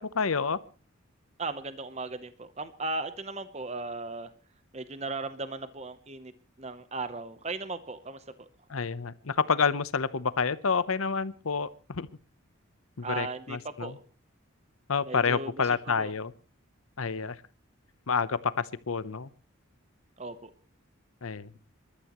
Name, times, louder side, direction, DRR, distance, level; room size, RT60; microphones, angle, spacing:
voice 1, 0.1-0.6 8.7-12.1 13.0-14.0 14.9-16.3 17.0-17.4 18.1-19.3 21.2-21.5, left 5 dB, 80° left, 15 dB, 0.8 m, -28 dB
voice 2, 1.4-4.3 4.7-6.3 6.6-8.5 13.0-14.0 15.0-16.1 20.2-20.5, right 3 dB, 30° right, 12 dB, 0.8 m, -37 dB
27.0 x 13.0 x 3.0 m, 0.34 s
head